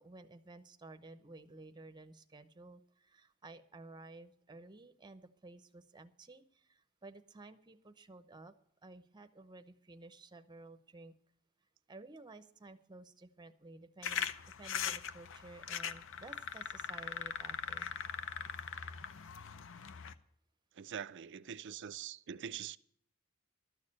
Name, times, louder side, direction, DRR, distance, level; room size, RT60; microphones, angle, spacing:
voice 1, 0.0-8.5 8.8-11.1 11.9-17.9, right 2 dB, 20° right, 0.7 m, -54 dB
sound 1, 14.0-20.1, left 7 dB, 60° left, 0.6 m, -41 dB
voice 2, 20.7-22.8, right 8 dB, 55° right, 0.5 m, -44 dB
12.5 x 6.5 x 8.6 m
head